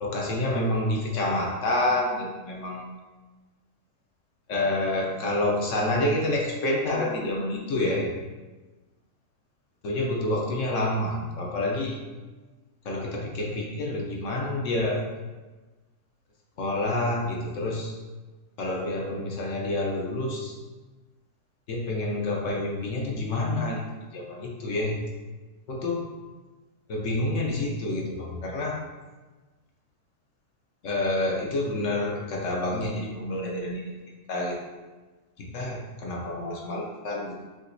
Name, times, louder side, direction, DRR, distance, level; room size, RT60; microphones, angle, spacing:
voice 1, 0.0-2.9 4.5-8.1 9.8-12.0 12.8-15.0 16.6-17.9 18.6-20.6 21.7-23.8 24.1-25.0 25.7-26.0 26.9-28.8 30.8-33.9 34.3-34.6 35.4-37.3, left 1 dB, 60° left, -1 dB, 0.9 m, -28 dB
5.0 x 3.7 x 2.6 m, 1.2 s
omnidirectional pair, 1.7 m